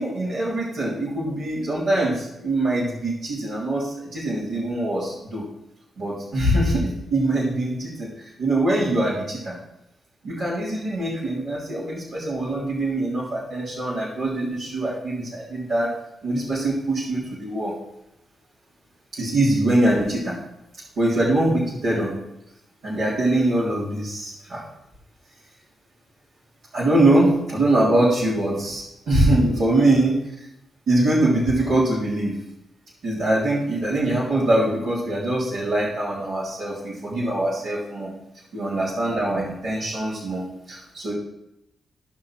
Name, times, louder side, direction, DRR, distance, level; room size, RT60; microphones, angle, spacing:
voice 1, 0.0-5.5 6.0-9.6 10.2-15.9 16.2-17.7 19.1-20.4 21.0-22.1 22.8-24.6 26.7-30.2 30.9-32.4 33.0-38.1 38.5-41.1, right 1 dB, 75° right, -9 dB, 3.2 m, -23 dB
14.5 x 5.8 x 4.7 m, 0.85 s
supercardioid pair, 50°, 0 cm